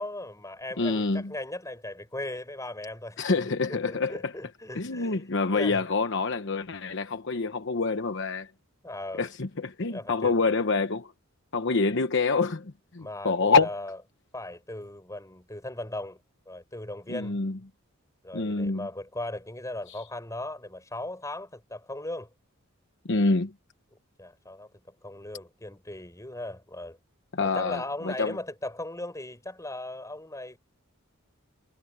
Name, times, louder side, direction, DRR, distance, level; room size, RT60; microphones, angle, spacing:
voice 1, 0.0-3.2 3.4-5.8 8.8-9.3 9.9-10.3 13.0-14.0 14.3-16.2 16.5-17.4 18.2-22.3 23.9-27.0 27.4-30.6, left 1 dB, 15° left, 6.6 m, -38 dB
voice 2, 0.8-1.3 3.2-4.1 4.7-8.5 9.2-11.1 11.5-13.7 17.1-17.6 18.3-18.9 23.0-23.5 27.3-28.4, left 4 dB, 55° left, 1.0 m, -26 dB
head